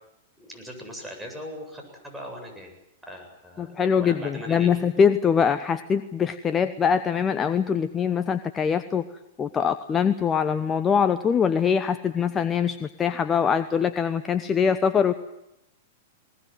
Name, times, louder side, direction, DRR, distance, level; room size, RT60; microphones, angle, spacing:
voice 1, 0.4-2.7 3.0-4.7, equal, 5° right, 1 dB, 7.9 m, -40 dB
voice 2, 3.6-9.1 9.4-15.1, left 7 dB, 20° left, 10 dB, 1.0 m, -23 dB
20.5 x 20.0 x 9.3 m, 0.84 s
hypercardioid pair, 110°, 0 cm